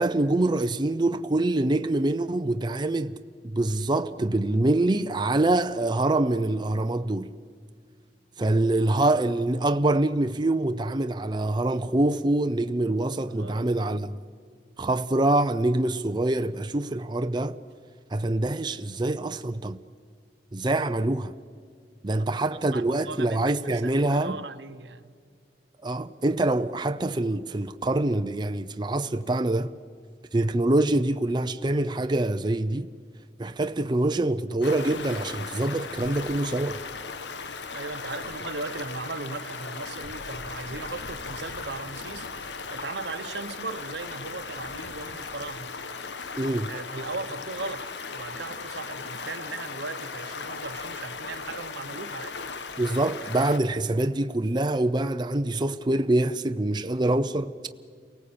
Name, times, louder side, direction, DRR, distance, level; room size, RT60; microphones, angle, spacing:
voice 1, 0.0-3.1 3.4-7.3 8.4-14.1 14.8-17.6 18.1-19.8 20.5-21.3 22.0-24.4 25.8-29.7 30.3-32.9 33.4-36.8 46.4-46.7 52.8-57.5, right 2 dB, 25° right, 0.6 m, -25 dB
voice 2, 13.3-14.0 22.1-25.1 37.7-45.7 46.6-52.4, right 3 dB, 80° right, 1.1 m, -38 dB
Stream, 34.6-53.6, left 4 dB, 80° left, 1.2 m, -37 dB
28.5 x 18.5 x 8.7 m
head